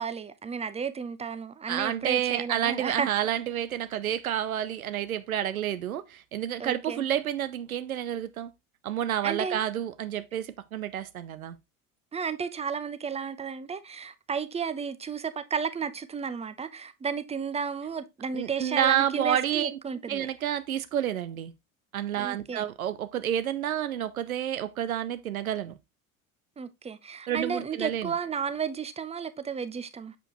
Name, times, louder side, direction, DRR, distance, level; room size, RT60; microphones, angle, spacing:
voice 1, 0.0-3.1 6.6-7.0 9.2-9.6 12.1-20.3 22.2-22.7 26.6-30.1, right 6 dB, 15° right, 0.7 m, -33 dB
voice 2, 1.7-8.5 8.8-11.6 18.3-19.8 20.1-21.5 21.9-25.8 27.3-28.1, right 10 dB, 85° right, 0.7 m, -29 dB
6.8 x 5.1 x 3.0 m
figure-of-eight pair, 65°, 41 cm